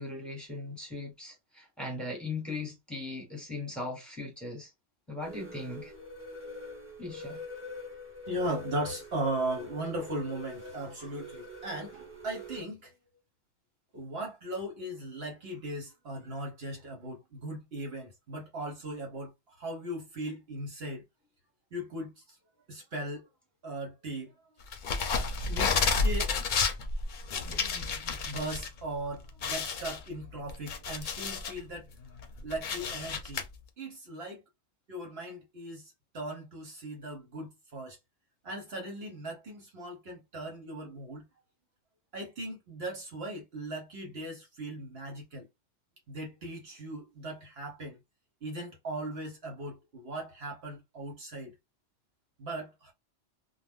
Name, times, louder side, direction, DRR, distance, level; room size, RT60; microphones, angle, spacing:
voice 1, 0.0-4.7 5.1-5.9 7.0-7.4, left 2 dB, ahead, 1.2 m, -39 dB
sound 1, 5.2-12.6, left 2 dB, 15° right, 0.6 m, -44 dB
voice 2, 8.3-12.9 13.9-19.3 19.6-21.0 21.7-22.1 22.7-23.2 23.6-24.3 25.5-26.4 28.2-31.9 32.4-33.4 33.8-34.4 34.9-38.0 38.4-41.2 42.1-45.5 46.1-48.0 48.4-51.5 52.4-52.9, right 1 dB, 65° right, 1.1 m, -38 dB
sound 2, 24.7-28.7 29.0-29.1 29.4-31.6 32.0-33.4, left 4 dB, 55° left, 0.6 m, -31 dB
2.5 x 2.1 x 3.4 m
omnidirectional pair, 1.1 m